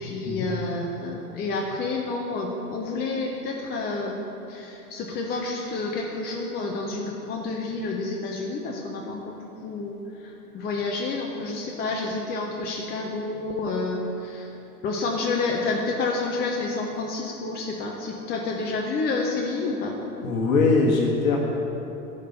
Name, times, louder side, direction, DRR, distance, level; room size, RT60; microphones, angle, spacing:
voice 1, 0.0-14.5 14.8-20.0, left 3 dB, 20° left, 0 dB, 0.8 m, -29 dB
voice 2, 20.2-21.4, left 3 dB, 60° left, -1 dB, 1.5 m, -21 dB
11.5 x 5.5 x 6.7 m, 3.0 s
figure-of-eight pair, 105°, 46 cm